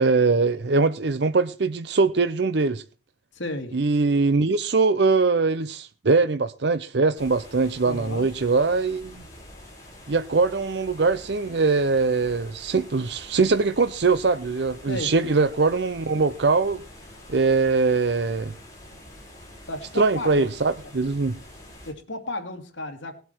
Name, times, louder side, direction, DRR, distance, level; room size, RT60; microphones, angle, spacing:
voice 1, 0.0-2.8 3.7-9.2 10.1-16.8 17.3-18.5 20.0-21.3, right 4 dB, 60° right, 0.6 m, -22 dB
voice 2, 3.3-3.8 7.8-8.3 14.9-15.4 19.7-20.5 21.8-23.2, left 1 dB, 80° left, 2.5 m, -33 dB
sound 1, 7.1-21.9, left 1 dB, 15° left, 4.4 m, -46 dB
19.5 x 8.0 x 4.4 m
head